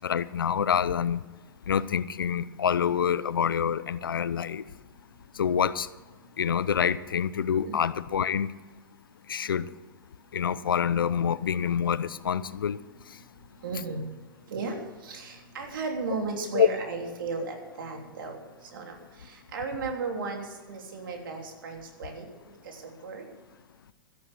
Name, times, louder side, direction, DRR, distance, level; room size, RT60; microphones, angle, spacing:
voice 1, 0.0-1.2 1.7-4.6 5.4-5.9 6.4-8.5 9.3-9.7 10.3-12.8 16.5-16.7, left 8 dB, 85° left, 17 dB, 0.7 m, -26 dB
voice 2, 13.6-14.1 14.5-18.4 18.7-23.3, right 4 dB, 75° right, 2 dB, 3.3 m, -35 dB
13.5 x 11.0 x 6.6 m, 1.2 s
hypercardioid pair, 115°, 11 cm